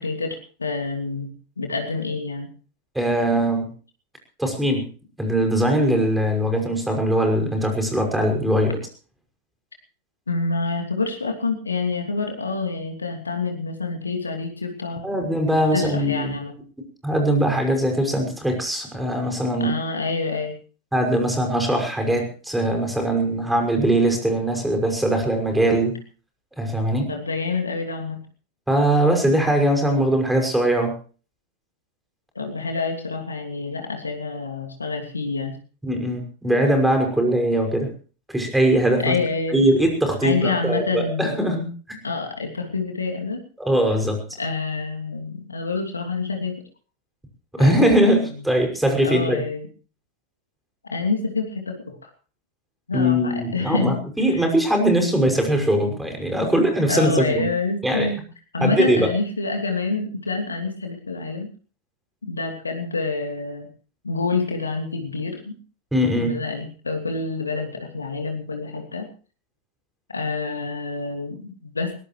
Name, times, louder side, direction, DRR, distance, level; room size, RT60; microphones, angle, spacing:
voice 1, 0.0-2.5 10.3-15.0 15.7-16.5 19.6-20.6 27.1-28.2 32.3-35.5 39.0-39.6 40.2-41.5 42.0-43.4 44.4-46.6 47.6-48.4 49.0-49.7 50.8-52.1 52.9-54.0 56.9-58.2 58.5-61.5 62.2-63.7 64.0-65.6 66.2-69.1 70.1-71.9, left 4 dB, 75° left, 4 dB, 3.0 m, -27 dB
voice 2, 2.9-3.7 4.4-4.9 5.2-8.8 15.0-16.4 17.0-19.7 20.9-26.0 26.6-27.1 28.7-30.9 35.8-37.9 38.3-39.1 39.5-41.7 43.6-44.2 47.6-49.4 52.9-57.5 57.8-58.1 58.6-59.1 65.9-66.4, right 1 dB, 5° right, 3 dB, 5.9 m, -21 dB
21.5 x 18.0 x 3.1 m, 0.38 s
figure-of-eight pair, 90°, 0 cm